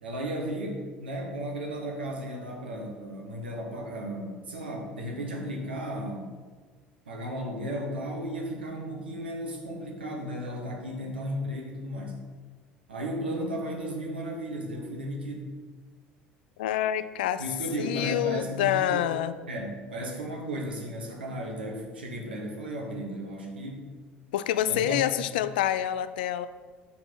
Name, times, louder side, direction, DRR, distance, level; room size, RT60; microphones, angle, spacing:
voice 1, 0.0-6.4 7.0-12.2 12.9-15.5 17.4-19.1 19.5-23.8 24.6-25.3, equal, 75° right, 0 dB, 1.3 m, -35 dB
voice 2, 16.6-17.4 17.8-19.3 24.3-26.5, left 11 dB, 65° left, 13 dB, 0.3 m, -27 dB
5.9 x 4.9 x 6.0 m, 1.5 s
figure-of-eight pair, 65°, 5 cm